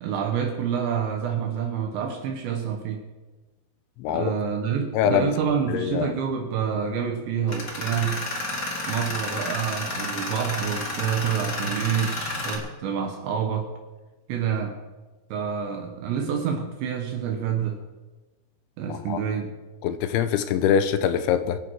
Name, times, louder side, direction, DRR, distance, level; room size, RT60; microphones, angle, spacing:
voice 1, 0.0-3.0 4.1-8.2 8.9-13.7 14.3-14.8 15.3-17.8 18.8-19.5, right 7 dB, 70° right, 3 dB, 3.1 m, -27 dB
voice 2, 4.0-4.3 4.9-5.3 5.7-6.1 18.9-19.2 19.8-21.6, left 9 dB, 80° left, 10 dB, 3.0 m, -23 dB
Tools, 7.5-12.6, left 2 dB, 30° left, 2.1 m, -31 dB
24.5 x 9.8 x 4.7 m, 1.2 s
omnidirectional pair, 5.7 m